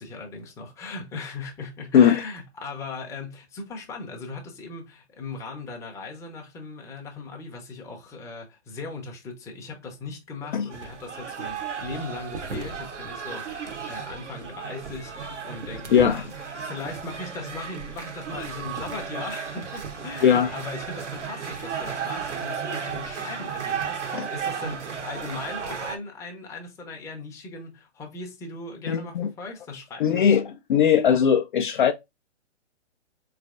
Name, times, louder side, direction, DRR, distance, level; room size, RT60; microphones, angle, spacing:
voice 1, 0.0-30.2, left 3 dB, 10° left, 0.7 m, -38 dB
sound 1, 10.7-26.0, right 6 dB, 85° right, 1.0 m, -34 dB
voice 2, 20.2-20.5 24.1-24.3 28.9-29.3 30.0-31.9, left 8 dB, 45° left, 0.5 m, -19 dB
4.3 x 3.3 x 2.4 m
figure-of-eight pair, 130°, 35 cm